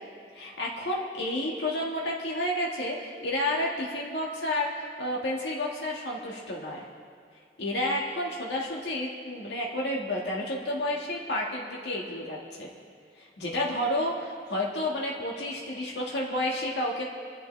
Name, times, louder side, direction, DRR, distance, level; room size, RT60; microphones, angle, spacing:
voice 1, 0.3-6.9 7.6-12.7 13.2-17.0, left 1 dB, 85° left, -3 dB, 1.9 m, -31 dB
28.5 x 11.0 x 3.4 m, 2.2 s
head